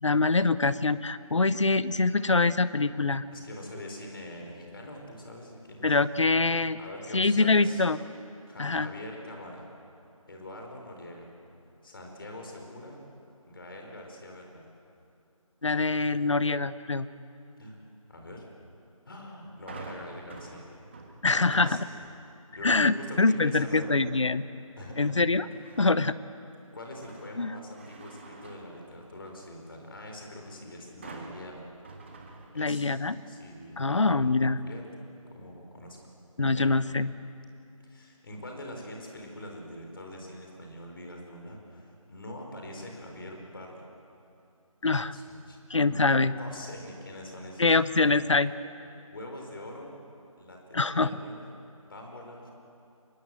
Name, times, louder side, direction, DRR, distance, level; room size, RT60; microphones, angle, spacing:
voice 1, 0.0-3.2 5.8-6.8 7.1-8.0 8.6-8.9 15.6-17.1 21.2-21.8 22.6-24.4 25.0-25.5 25.8-26.1 27.4-27.5 32.5-33.2 33.8-34.6 36.4-37.1 44.8-45.1 45.7-46.3 47.6-48.5 50.7-51.1, left 3 dB, 55° left, 15 dB, 0.9 m, -24 dB
voice 2, 3.3-6.0 6.8-7.8 8.5-9.7 10.3-11.3 11.8-13.0 13.4-14.7 17.6-17.8 18.1-18.5 19.1-20.7 21.3-21.8 22.5-24.0 24.8-25.1 26.7-31.6 32.5-32.9 33.2-34.4 34.6-34.8 35.3-36.0 36.4-36.7 37.8-43.8 45.0-45.6 46.4-47.7 49.1-49.9 50.4-50.6 50.8-51.5 51.8-52.5, left 1 dB, 40° left, 1 dB, 4.7 m, -43 dB
sound 1, 19.7-22.2 22.7-23.1 25.5-26.2 26.6-29.5 31.0-33.0 33.3-33.4, right 3 dB, 20° right, 1.4 m, -47 dB
24.0 x 21.5 x 7.8 m, 2.6 s
figure-of-eight pair, 165°, 18 cm